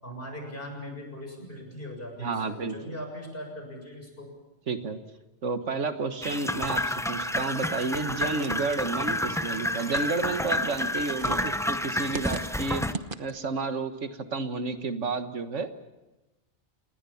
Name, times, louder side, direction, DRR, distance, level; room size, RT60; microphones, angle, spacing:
voice 1, 0.0-4.3 12.7-12.9, equal, 50° left, 3 dB, 7.0 m, -40 dB
voice 2, 2.2-2.9 4.7-5.0 5.4-12.8 13.2-15.7, right 4 dB, 85° right, 8 dB, 1.8 m, -31 dB
sound 1, 6.2-12.9, left 1 dB, 5° left, 0.6 m, -30 dB
sound 2, 7.7-13.6, right 4 dB, 50° right, 1.2 m, -42 dB
28.5 x 20.0 x 7.1 m, 1.0 s
omnidirectional pair, 1.2 m